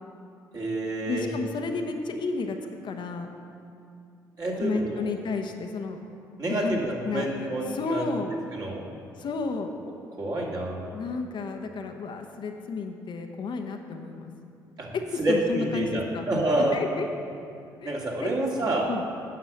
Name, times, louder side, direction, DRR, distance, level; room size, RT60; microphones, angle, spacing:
voice 1, 0.5-1.3 4.4-5.1 6.4-8.1 8.5-8.8 10.2-10.8 14.8-16.8 17.8-18.9, right 1 dB, 45° right, -3 dB, 2.5 m, -28 dB
voice 2, 1.1-2.6 2.8-3.3 4.6-6.0 6.5-6.8 7.1-7.3 7.7-8.3 9.2-9.7 10.9-14.3 15.3-16.2 16.7-17.1 17.8-17.9 18.2-18.3 18.9-19.0, left 4 dB, 55° left, 4 dB, 0.9 m, -31 dB
9.4 x 6.0 x 6.8 m, 2.5 s
hypercardioid pair, 45°, 10 cm